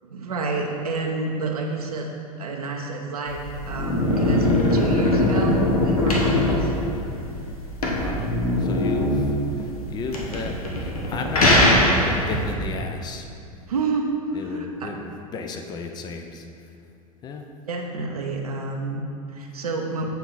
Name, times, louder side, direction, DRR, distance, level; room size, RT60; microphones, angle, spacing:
voice 1, 0.0-2.1 2.4-6.7 13.7-14.9 17.7-20.1, right 3 dB, 80° right, 1 dB, 0.7 m, -29 dB
sound 1, 3.3-12.5, left 1 dB, 75° left, 1.1 m, -21 dB
voice 2, 7.9-8.3 8.6-13.3 14.3-16.5 17.2-17.4, left 4 dB, 20° left, 5 dB, 0.5 m, -33 dB
8.0 x 4.5 x 4.0 m, 2.5 s
figure-of-eight pair, 85°, 19 cm